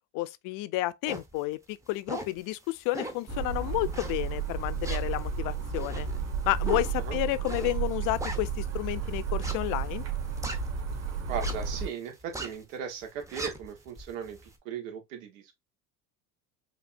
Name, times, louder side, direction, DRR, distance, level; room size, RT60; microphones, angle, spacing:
voice 1, 0.1-6.1 6.4-10.0, left 18 dB, 55° left, 0.5 m, -31 dB
sound 1, 1.1-1.3 1.8-2.4 2.9-3.3 3.9-4.4 4.8-8.8 9.3-11.0 11.3-11.8 12.1-12.6 13.0-14.5, right 2 dB, 10° right, 0.6 m, -39 dB
sound 2, 3.3-11.9, right 6 dB, 40° right, 1.6 m, -32 dB
voice 2, 11.3-15.5, right 7 dB, 90° right, 1.4 m, -37 dB
5.1 x 2.7 x 2.5 m
supercardioid pair, 115°, 38 cm